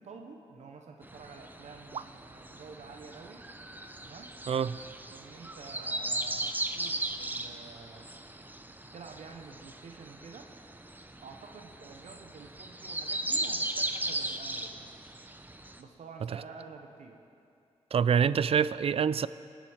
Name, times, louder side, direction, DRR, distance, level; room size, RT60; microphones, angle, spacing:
voice 1, 0.0-3.4 4.0-4.3 5.1-8.1 8.9-10.5 11.2-15.0 15.8-17.2, right 4 dB, 75° right, 4 dB, 0.9 m, -49 dB
sound 1, 1.0-15.8, right 1 dB, 15° right, 0.8 m, -37 dB
voice 2, 4.5-4.8 17.9-19.3, right 7 dB, 55° right, 17 dB, 0.3 m, -26 dB
19.5 x 7.5 x 5.0 m, 2.5 s
cardioid pair, 65°, 12 cm